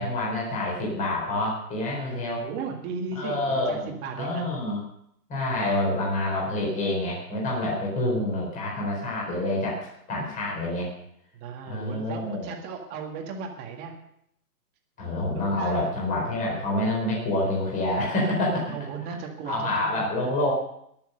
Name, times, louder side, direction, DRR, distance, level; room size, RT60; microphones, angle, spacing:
voice 1, 0.0-2.5 3.1-4.8 5.3-10.9 11.7-12.5 15.0-18.7 19.5-20.5, left 1 dB, 15° left, -3 dB, 4.3 m, -27 dB
voice 2, 2.0-4.4 8.6-8.7 11.3-13.9 15.3-15.9 18.5-20.3, right 5 dB, 20° right, 2 dB, 2.0 m, -36 dB
21.5 x 7.2 x 6.7 m, 0.73 s
hypercardioid pair, 150°, 49 cm